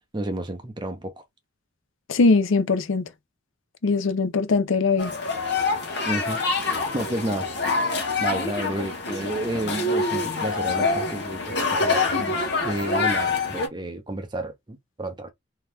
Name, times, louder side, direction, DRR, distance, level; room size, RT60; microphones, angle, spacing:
voice 1, 0.1-1.1 6.1-7.5 7.9-15.3, right 1 dB, 20° right, 0.6 m, -31 dB
voice 2, 2.1-3.0 3.8-5.1, left 4 dB, 80° left, 0.5 m, -21 dB
sound 1, 5.0-13.7, left 3 dB, 55° left, 0.9 m, -25 dB
2.7 x 2.3 x 3.3 m
head